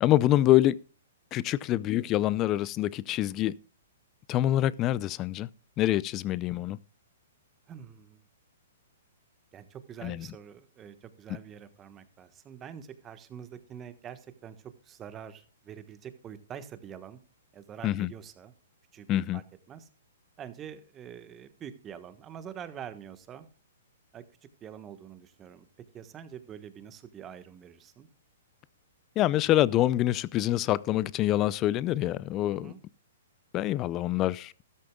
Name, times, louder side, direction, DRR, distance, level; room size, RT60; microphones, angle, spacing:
voice 1, 0.0-0.8 1.3-3.5 4.3-5.5 5.8-6.8 10.0-10.3 17.8-18.1 19.1-19.4 29.2-32.7 33.5-34.5, left 14 dB, 30° left, 0.4 m, -25 dB
voice 2, 7.7-8.2 9.5-17.2 17.5-18.5 18.9-19.9 20.4-23.5 24.1-24.2 24.6-25.7 25.9-28.1 32.5-32.8, right 8 dB, 20° right, 1.3 m, -45 dB
13.5 x 13.0 x 2.3 m
hypercardioid pair, 130°, 0 cm